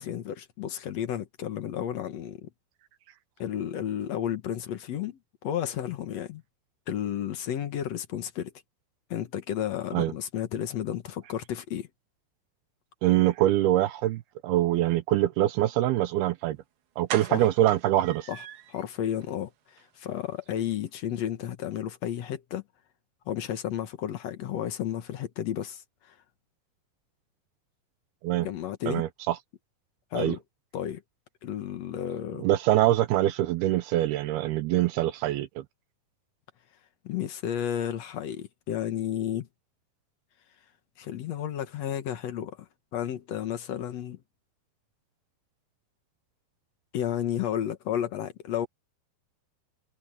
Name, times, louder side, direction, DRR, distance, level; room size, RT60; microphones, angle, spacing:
voice 1, 0.0-2.5 3.4-6.4 6.9-8.5 9.1-11.9 17.3-17.4 18.3-18.4 18.7-22.6 23.3-26.2 28.4-29.1 30.1-30.4 30.7-31.0 31.4-32.4 37.0-39.5 41.0-44.2 46.9-48.7, left 10 dB, 65° left, 1.7 m, -32 dB
voice 2, 13.0-16.6 17.0-18.3 28.2-28.5 28.9-29.4 30.2-30.4 32.4-35.6, right 14 dB, 80° right, 2.7 m, -24 dB
sound 1, 16.4-16.5 17.1-18.9 19.2-19.3 19.7-19.8 20.1-20.2, right 10 dB, 65° right, 2.6 m, -38 dB
omnidirectional pair, 4.7 m